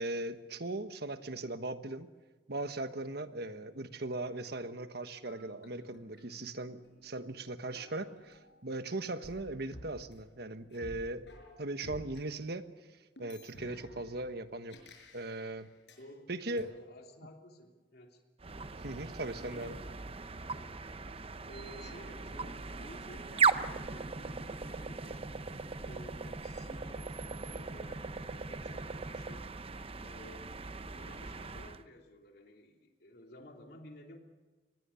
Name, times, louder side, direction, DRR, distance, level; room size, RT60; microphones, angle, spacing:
voice 1, 0.0-2.1 2.5-8.1 8.6-11.3 11.6-12.6 13.2-14.7 15.1-15.7 16.3-16.7 18.8-19.8, right 2 dB, 65° right, 10 dB, 1.4 m, -38 dB
sound 1, 5.2-8.8 9.2-12.2 13.2-16.0 16.6-16.7, equal, 80° left, 6.2 m, -54 dB
voice 2, 7.7-8.1 9.1-9.3 16.0-18.2 19.5-19.9 21.5-25.3 25.8-29.5 30.0-30.6 30.9-34.2, left 1 dB, 65° left, 3 dB, 3.1 m, -54 dB
sound 2, 18.4-31.8, right 4 dB, 35° right, 0.9 m, -38 dB
25.0 x 20.0 x 7.1 m, 1.3 s
head